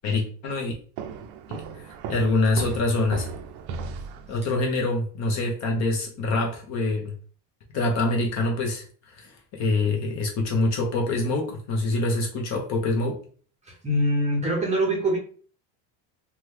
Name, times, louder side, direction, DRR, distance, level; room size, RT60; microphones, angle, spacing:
voice 1, 0.0-0.7 1.5-3.3 4.3-7.1 7.7-13.2, left 2 dB, 35° left, 1 dB, 0.6 m, -25 dB
sound 1, 1.0-4.7, right 5 dB, 60° right, 0.5 m, -36 dB
voice 2, 13.6-15.2, right 1 dB, 15° right, -2 dB, 0.6 m, -24 dB
2.8 x 2.2 x 3.2 m, 0.42 s
cardioid pair, 160°, 46 cm